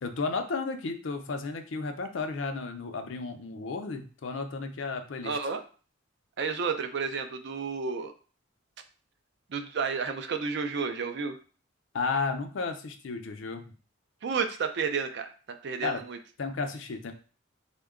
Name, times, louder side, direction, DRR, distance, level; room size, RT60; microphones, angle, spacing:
voice 1, 0.0-5.4 11.9-13.7 15.8-16.0 16.4-17.1, left 4 dB, 70° left, 6 dB, 0.5 m, -33 dB
voice 2, 5.2-5.6 6.4-8.1 9.5-11.4 14.2-15.3 15.6-16.2, right 5 dB, 55° right, 8 dB, 0.4 m, -31 dB
3.7 x 2.2 x 3.6 m, 0.38 s
head